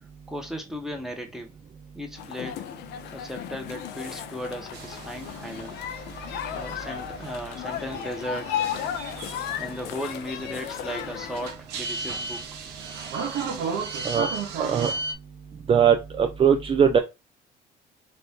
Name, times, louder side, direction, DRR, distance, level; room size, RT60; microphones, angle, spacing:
voice 1, 0.3-1.5 1.9-2.7 3.1-5.8 6.5-8.6 9.6-12.5, equal, ahead, 1.0 m, -36 dB
sound 1, 2.2-11.5, left 9 dB, 80° left, 0.6 m, -35 dB
sound 2, 4.7-15.1, right 4 dB, 85° right, 1.0 m, -35 dB
voice 2, 14.6-14.9 15.7-17.0, right 7 dB, 30° right, 0.4 m, -20 dB
4.2 x 2.6 x 3.5 m
cardioid pair, 110°, 17 cm